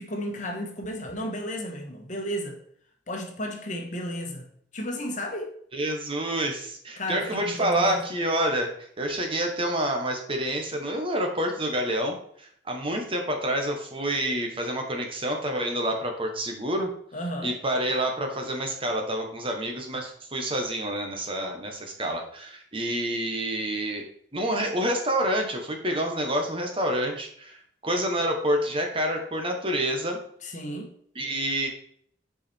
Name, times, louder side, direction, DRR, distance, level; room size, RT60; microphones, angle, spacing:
voice 1, 0.0-2.6 3.1-4.5 4.7-5.5 7.0-8.0 17.1-17.5 30.4-30.9, equal, 40° left, 3 dB, 1.3 m, -33 dB
voice 2, 5.7-16.9 17.4-24.0 24.3-30.2 31.1-31.7, right 1 dB, 30° right, 3 dB, 1.3 m, -28 dB
8.3 x 5.0 x 4.5 m, 0.63 s
head